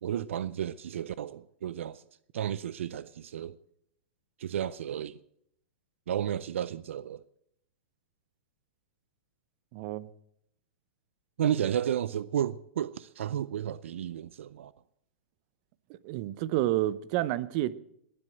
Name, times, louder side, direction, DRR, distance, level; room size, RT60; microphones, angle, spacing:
voice 1, 0.0-2.0 2.3-3.6 4.4-5.2 6.1-7.2 11.4-14.7, right 10 dB, 75° right, 0.5 m, -32 dB
voice 2, 9.7-10.1 15.9-17.8, right 15 dB, 45° right, 0.8 m, -30 dB
20.5 x 7.9 x 7.7 m
hypercardioid pair, 130°, 7 cm